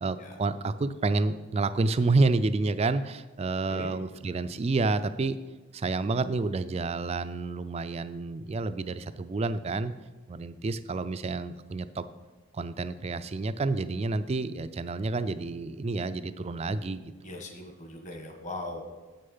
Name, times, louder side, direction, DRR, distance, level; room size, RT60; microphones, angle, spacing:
voice 1, 0.0-5.4 5.7-9.9 10.3-12.1 12.5-17.1, right 3 dB, 30° right, 12 dB, 0.3 m, -29 dB
voice 2, 17.2-18.8, left 2 dB, 35° left, 4 dB, 1.3 m, -39 dB
8.4 x 6.6 x 5.5 m, 1.3 s
head